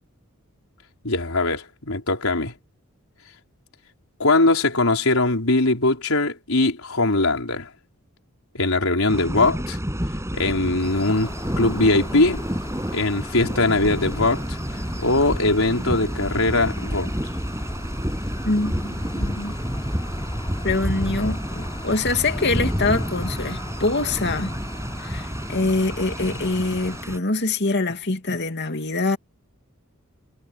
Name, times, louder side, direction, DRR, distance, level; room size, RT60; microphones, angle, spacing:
voice 1, 1.0-2.5 4.2-7.7 8.5-9.8 10.3-12.4 12.9-14.6 15.0-17.1, left 2 dB, 80° left, 4.3 m, -21 dB
sound 1, 9.1-27.2, equal, 15° right, 7.9 m, -29 dB
sound 2, 10.8-27.0, left 1 dB, 20° left, 4.8 m, -39 dB
voice 2, 18.4-19.5 20.6-24.5 25.0-29.2, left 3 dB, 55° left, 2.7 m, -24 dB
head